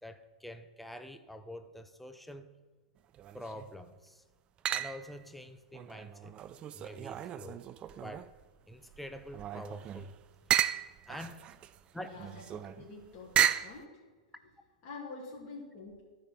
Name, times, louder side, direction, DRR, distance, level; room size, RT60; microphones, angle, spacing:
voice 1, 0.0-2.5 3.3-4.2 4.7-6.4 6.7-7.6 8.0-8.3 8.7-10.2 11.1-11.5 11.9-12.1, left 1 dB, ahead, 8 dB, 0.7 m, -46 dB
sound 1, 3.1-3.7 4.6-5.2 5.7-8.4 8.9-13.8, right 11 dB, 30° right, 0.4 m, -34 dB
voice 2, 12.0-14.0 14.8-16.0, left 3 dB, 45° left, -5 dB, 2.6 m, -47 dB
14.0 x 5.1 x 4.4 m, 1.3 s
hypercardioid pair, 110°, 4 cm